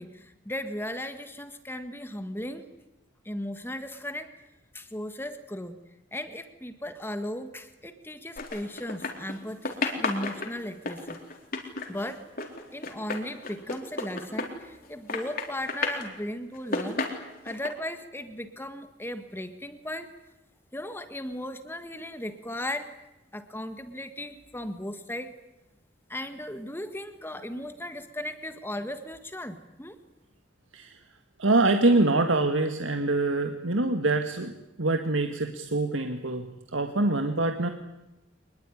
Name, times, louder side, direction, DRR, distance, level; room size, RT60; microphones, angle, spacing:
voice 1, 0.0-2.7 3.2-4.3 4.7-5.8 6.1-11.2 11.9-12.2 12.7-17.0 17.4-20.1 20.7-22.9 23.3-25.3 26.1-30.0, left 1 dB, 10° left, 9 dB, 1.7 m, -36 dB
sound 1, 8.4-9.4 9.6-14.8 15.1-16.1 16.5-17.7, left 3 dB, 50° left, 4.0 m, -32 dB
voice 2, 31.4-36.5 36.7-37.7, right 2 dB, 90° right, 6 dB, 1.9 m, -25 dB
25.5 x 21.0 x 9.9 m, 0.96 s
head